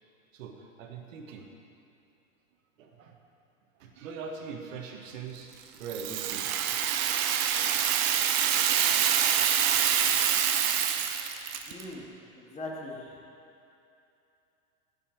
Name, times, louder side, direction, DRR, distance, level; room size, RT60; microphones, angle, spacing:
voice 1, 0.3-1.5 2.8-3.2 3.7-5.5 5.8-6.6, right 5 dB, 70° right, 3 dB, 1.3 m, -42 dB
Rattle (instrument), 5.9-11.8, right 9 dB, 45° right, 0.8 m, -26 dB
voice 2, 11.7-13.2, left 1 dB, 15° left, -2 dB, 1.7 m, -41 dB
15.5 x 5.5 x 4.6 m, 2.7 s
hypercardioid pair, 115°, 41 cm